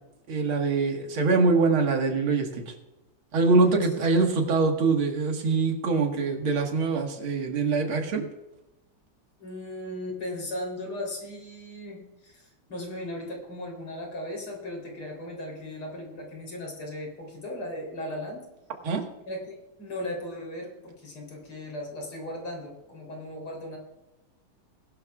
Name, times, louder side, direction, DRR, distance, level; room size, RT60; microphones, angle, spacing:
voice 1, 0.3-2.7 3.3-8.3 18.8-19.0, right 4 dB, 75° right, 2 dB, 2.5 m, -24 dB
voice 2, 9.4-18.5 19.3-23.8, left 1 dB, 80° left, 1 dB, 4.5 m, -37 dB
20.0 x 12.0 x 2.4 m, 0.96 s
omnidirectional pair, 2.3 m